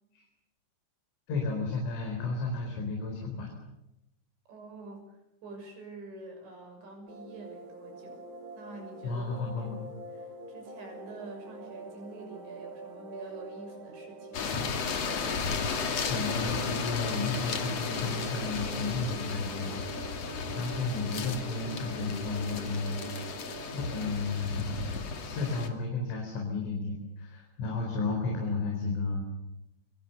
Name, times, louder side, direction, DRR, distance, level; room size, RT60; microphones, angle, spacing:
voice 1, 1.3-3.5 9.0-9.9 16.1-25.0 25.2-29.2, left 3 dB, 85° left, 0 dB, 6.8 m, -33 dB
voice 2, 4.5-8.2 8.6-9.3 9.6-9.7 10.1-14.6, right 2 dB, 70° right, 4 dB, 8.5 m, -47 dB
sound 1, 7.1-24.1, right 4 dB, 45° right, 2.4 m, -45 dB
sound 2, 14.3-25.7, left 5 dB, 45° left, 2.5 m, -34 dB
29.0 x 23.5 x 7.0 m, 0.90 s
omnidirectional pair, 5.4 m